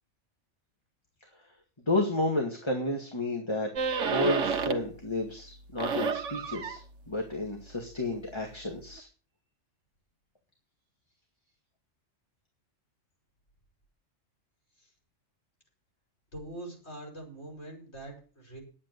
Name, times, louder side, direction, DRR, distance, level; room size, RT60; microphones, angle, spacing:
voice 1, 1.9-6.8 7.1-9.1, left 2 dB, 20° left, 2 dB, 2.0 m, -31 dB
sound 1, 3.8-5.0 5.4-9.0, right 5 dB, 75° right, 1.4 m, -33 dB
voice 2, 16.3-18.6, right 1 dB, 60° left, 2 dB, 5.6 m, -43 dB
10.5 x 8.7 x 6.8 m, 0.38 s
omnidirectional pair, 1.3 m